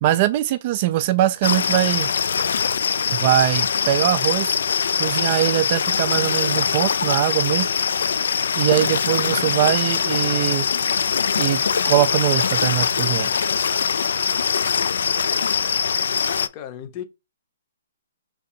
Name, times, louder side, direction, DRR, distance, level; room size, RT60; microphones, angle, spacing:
voice 1, 0.0-2.1 3.1-4.6 5.0-7.7 8.5-10.7 11.4-13.3, right 13 dB, 35° right, 0.4 m, -21 dB
sound 1, 1.4-16.5, left 6 dB, 70° left, 0.3 m, -22 dB
voice 2, 8.6-9.1 16.2-17.0, left 10 dB, 25° left, 0.7 m, -37 dB
3.8 x 2.6 x 4.2 m
hypercardioid pair, 160°, 0 cm